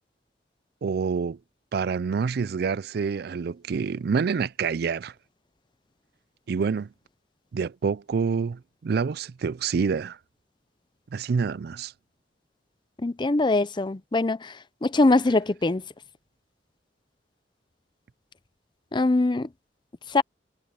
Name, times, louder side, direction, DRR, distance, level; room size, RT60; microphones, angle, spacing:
voice 1, 0.8-1.4 1.7-5.1 6.5-6.9 7.5-10.2 11.1-11.9, right 5 dB, 60° right, 0.4 m, -27 dB
voice 2, 13.0-15.8 18.9-19.5 20.1-20.2, left 2 dB, 25° left, 0.5 m, -23 dB
head